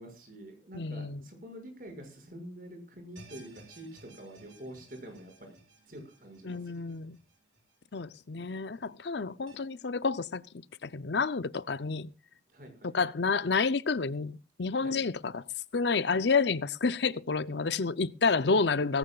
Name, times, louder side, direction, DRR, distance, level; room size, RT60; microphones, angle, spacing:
voice 1, 0.0-5.6 5.9-7.0 12.5-12.9 14.8-15.0, right 1 dB, 50° right, 6.5 m, -47 dB
voice 2, 0.7-1.2 6.4-7.2 7.9-10.4 10.8-12.1 12.9-15.4 15.7-19.0, left 4 dB, 65° left, 0.7 m, -29 dB
sound 1, 3.2-8.4 8.7-8.8 9.5-9.6, right 3 dB, 85° right, 7.9 m, -57 dB
18.5 x 16.5 x 2.4 m
head